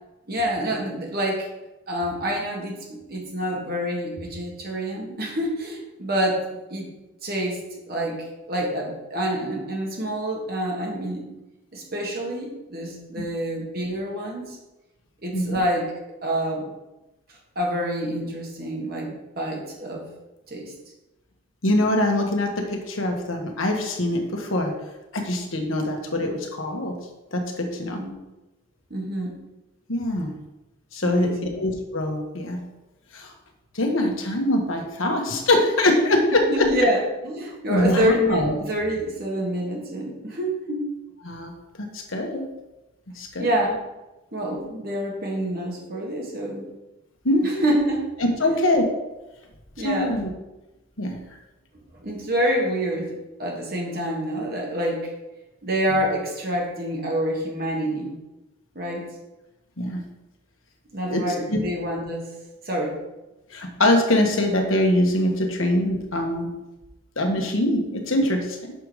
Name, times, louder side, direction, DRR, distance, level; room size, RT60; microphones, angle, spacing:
voice 1, 0.3-1.5 1.9-6.9 7.2-11.3 11.7-14.6 15.2-15.9 16.2-16.7 17.6-20.1 20.5-20.7 28.0-28.1 28.9-29.4 31.0-31.5 36.3-40.9 43.4-43.9 44.3-46.7 47.4-48.1 48.4-48.5 49.8-50.2 52.0-53.1 53.4-55.1 55.6-58.1 58.8-59.1 60.9-62.3 62.6-63.0, equal, 45° right, -1 dB, 1.7 m, -27 dB
voice 2, 21.6-24.7 25.1-27.0 27.3-28.0 29.9-30.3 30.9-32.6 33.1-33.3 33.7-36.7 37.7-38.5 41.2-41.5 41.8-42.4 43.2-43.5 47.2-47.6 48.2-48.8 49.8-50.3 51.0-51.1 59.8-60.0 61.1-61.6 63.5-66.5 67.2-68.6, left 1 dB, 65° left, 2 dB, 1.2 m, -23 dB
6.7 x 5.2 x 4.8 m, 1.0 s
head